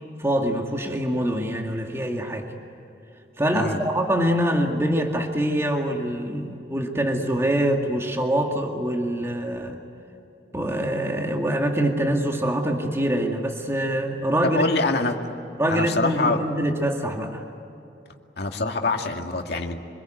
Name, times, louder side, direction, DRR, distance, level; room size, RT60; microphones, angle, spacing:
voice 1, 0.2-2.5 3.4-9.8 10.5-14.7 15.6-17.4, right 1 dB, 15° right, 2 dB, 2.1 m, -24 dB
voice 2, 14.4-15.2 15.7-16.4 18.4-19.8, left 3 dB, 65° left, 3 dB, 2.3 m, -25 dB
26.5 x 21.5 x 9.3 m, 2.8 s
head